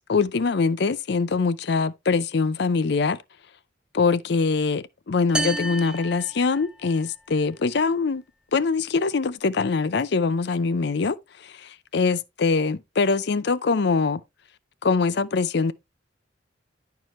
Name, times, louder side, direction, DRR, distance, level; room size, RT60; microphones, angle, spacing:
voice 1, 0.1-3.2 3.9-8.2 8.5-11.2 11.9-14.2 14.8-15.7, left 4 dB, 60° left, 0.5 m, -23 dB
sound 1, 5.3-7.1, right 2 dB, 5° right, 0.6 m, -31 dB
10.5 x 4.7 x 3.1 m
head